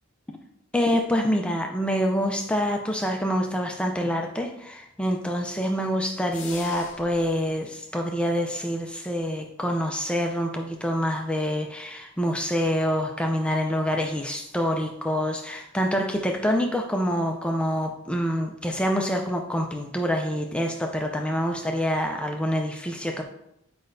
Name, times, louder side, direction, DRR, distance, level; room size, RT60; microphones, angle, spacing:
voice 1, 0.7-23.2, equal, 5° left, 2 dB, 0.4 m, -26 dB
sound 1, 6.3-7.3, left 6 dB, 60° left, 0.8 m, -41 dB
7.6 x 5.1 x 2.6 m, 0.78 s
head